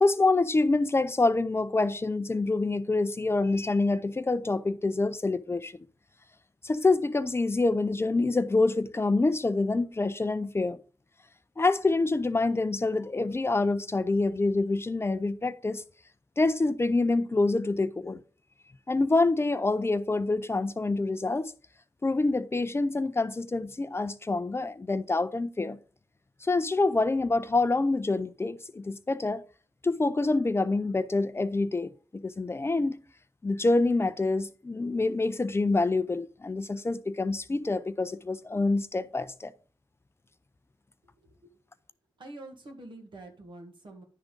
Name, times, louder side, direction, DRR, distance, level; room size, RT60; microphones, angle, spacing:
voice 1, 0.0-5.7 6.6-10.8 11.6-15.8 16.4-18.2 18.9-21.5 22.0-25.8 26.4-29.4 29.8-33.0 33.4-39.5, left 3 dB, 30° left, 0.5 m, -26 dB
voice 2, 41.1-41.5 42.2-44.0, right 2 dB, 65° right, 1.7 m, -46 dB
10.0 x 3.7 x 5.1 m
cardioid pair, 55°, 9 cm